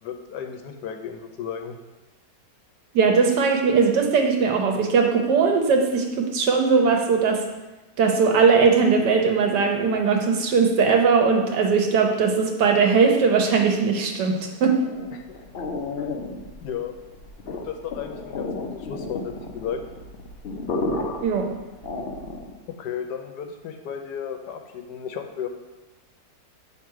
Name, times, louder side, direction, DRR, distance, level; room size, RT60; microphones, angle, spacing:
voice 1, 0.0-1.7 15.1-15.4 16.0-16.1 16.6-16.9 17.5-19.8 22.7-25.5, left 8 dB, 85° left, 5 dB, 1.3 m, -34 dB
voice 2, 2.9-7.4 8.0-14.3 14.6-14.8 21.2-21.5, right 5 dB, 85° right, 2 dB, 1.5 m, -19 dB
sound 1, 14.8-22.6, left 3 dB, 55° left, 0.6 m, -32 dB
7.6 x 3.4 x 4.7 m, 1.1 s
omnidirectional pair, 1.8 m